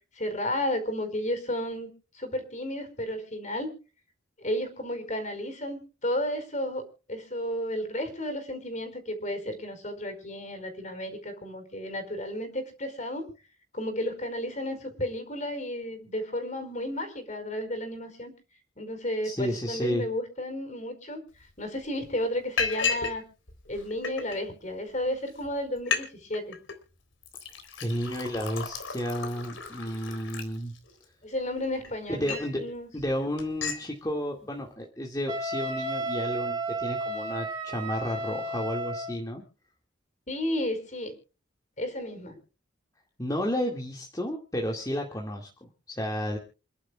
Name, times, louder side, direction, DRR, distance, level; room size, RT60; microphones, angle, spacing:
voice 1, 0.1-1.9 2.1-3.7 4.4-13.3 13.7-18.3 18.8-21.2 21.6-23.2 23.7-26.6 31.2-32.9 40.3-41.1 41.8-42.4, left 1 dB, 40° left, 8 dB, 4.9 m, -33 dB
voice 2, 19.2-20.0 27.8-30.7 32.1-32.6 32.9-39.4 43.2-46.4, equal, 20° left, 0 dB, 2.2 m, -32 dB
Liquid, 21.4-21.5 21.8-22.1 22.6-23.2 23.5-24.4 25.0-25.1 25.4-25.5 25.8-26.1 26.3-26.8 27.2-31.0 31.6-32.6 33.0-33.1 33.4-33.8, left 5 dB, 85° left, 3.9 m, -33 dB
Wind instrument woodwind instrument, 35.3-39.2, right 1 dB, 25° right, 3.9 m, -32 dB
28.5 x 11.5 x 2.4 m, 0.35 s
head